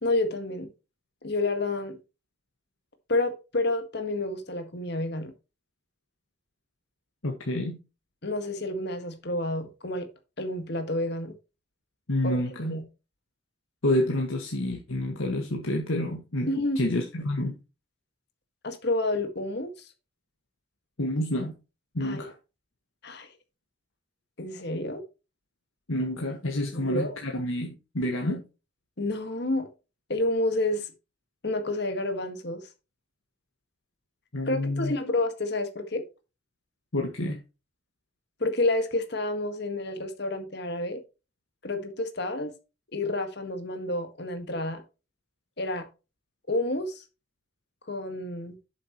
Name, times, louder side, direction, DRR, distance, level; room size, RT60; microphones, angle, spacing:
voice 1, 0.0-0.7 1.2-2.0 3.1-5.3 8.2-10.1 10.4-11.4 12.2-12.4 12.7-12.8 16.5-16.8 18.6-19.9 22.0-22.3 23.0-23.3 24.4-25.0 26.7-27.2 29.0-29.7 30.1-30.9 31.4-32.7 34.5-36.0 38.4-41.0 41.6-42.5 42.9-44.8 45.6-45.9 46.5-47.0 47.9-48.6, left 2 dB, 55° left, 1.7 m, -29 dB
voice 2, 7.2-7.8 12.1-12.8 13.8-16.5 16.8-17.5 21.0-21.5 21.9-22.3 25.9-28.4 34.3-34.9 36.9-37.4, left 1 dB, 85° left, 1.7 m, -28 dB
9.1 x 7.7 x 3.1 m
head